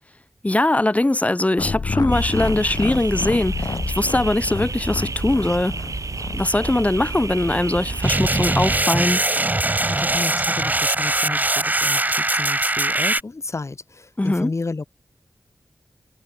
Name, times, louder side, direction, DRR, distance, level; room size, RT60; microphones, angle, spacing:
voice 1, 0.4-5.7 6.3-9.2 14.2-14.5, left 1 dB, 20° left, 2.4 m, -21 dB
sound 1, 1.6-8.0, left 4 dB, 70° left, 5.7 m, -29 dB
sound 2, 2.1-8.8, right 4 dB, 60° right, 4.3 m, -31 dB
sound 3, 8.0-13.2, right 2 dB, 25° right, 1.9 m, -21 dB
voice 2, 9.9-14.9, left 3 dB, 50° left, 1.9 m, -31 dB
wide cardioid pair, 85°, 6 cm